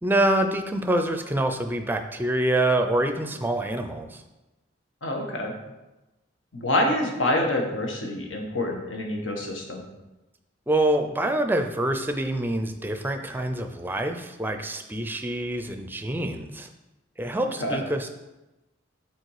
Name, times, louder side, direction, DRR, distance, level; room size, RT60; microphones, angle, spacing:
voice 1, 0.0-4.2 10.7-16.7 17.2-18.1, right 1 dB, 10° right, 6 dB, 0.4 m, -26 dB
voice 2, 5.0-5.5 6.5-9.8 17.6-17.8, left 1 dB, 85° left, 1 dB, 1.3 m, -26 dB
6.6 x 4.3 x 4.8 m, 1.0 s
head